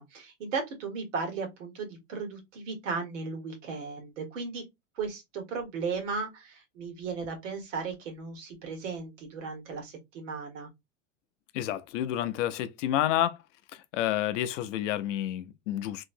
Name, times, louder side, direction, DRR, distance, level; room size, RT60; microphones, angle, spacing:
voice 1, 0.0-4.6 4.9-10.7, right 4 dB, 80° right, 1.6 m, -36 dB
voice 2, 11.5-13.4 13.9-16.0, left 12 dB, 75° left, 0.6 m, -29 dB
3.1 x 2.8 x 2.6 m
supercardioid pair, 120°, 37 cm